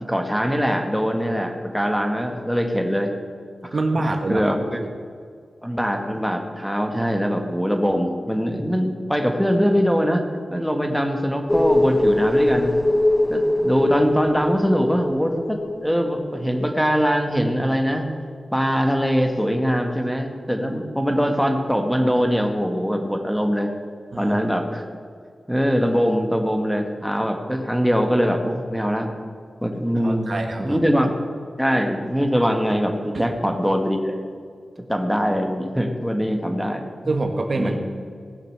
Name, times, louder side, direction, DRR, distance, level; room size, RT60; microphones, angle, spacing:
voice 1, 0.1-3.1 3.6-4.8 5.6-10.2 10.5-12.7 13.3-18.1 18.5-23.7 24.2-24.9 25.5-29.1 29.6-30.3 30.6-31.1 31.6-34.2 34.9-37.1 37.5-37.8, equal, ahead, 4 dB, 1.6 m, -22 dB
voice 2, 3.7-4.5 4.7-4.9 24.1-24.4 30.0-30.8 33.1-33.3 37.1-37.8, right 2 dB, 60° right, 4 dB, 1.3 m, -25 dB
sound 1, 11.5-16.7 17.0-17.1, left 1 dB, 25° left, 0.8 m, -22 dB
18.0 x 6.6 x 6.7 m, 2.1 s
cardioid pair, 60°, 0 cm